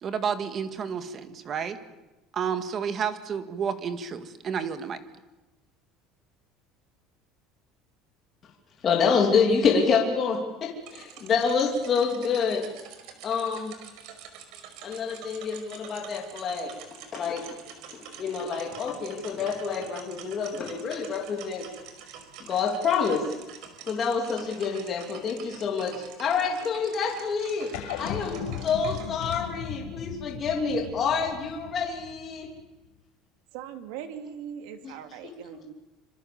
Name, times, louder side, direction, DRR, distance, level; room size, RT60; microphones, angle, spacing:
voice 1, 0.0-1.8 2.3-5.0, right 7 dB, 30° right, 9 dB, 1.9 m, -30 dB
voice 2, 8.8-12.7 13.2-13.7 14.8-16.7 17.1-17.4 17.9-21.6 22.4-23.4 23.9-27.7 28.0-32.5 34.8-34.9, left 5 dB, 25° left, 0 dB, 3.1 m, -27 dB
sound 1, 10.8-29.5, right 7 dB, 55° right, 5.1 m, -46 dB
sound 2, 27.7-32.5, left 9 dB, 75° left, 7.2 m, -37 dB
voice 3, 33.5-35.7, right 8 dB, 75° right, 7 dB, 3.1 m, -40 dB
26.5 x 26.5 x 7.1 m, 1.0 s
cardioid pair, 175°, 0 cm